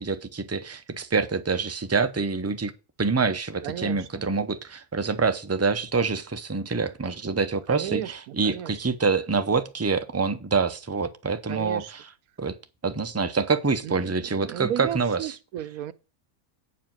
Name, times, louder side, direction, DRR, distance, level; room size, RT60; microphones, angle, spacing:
voice 1, 0.0-2.7 3.0-12.0 12.4-12.6 12.8-15.2, right 4 dB, 20° right, 0.4 m, -26 dB
voice 2, 3.6-4.3 7.7-8.7 11.5-11.9 13.8-15.9, right 11 dB, 80° right, 1.1 m, -34 dB
9.3 x 4.8 x 7.5 m
omnidirectional pair, 1.5 m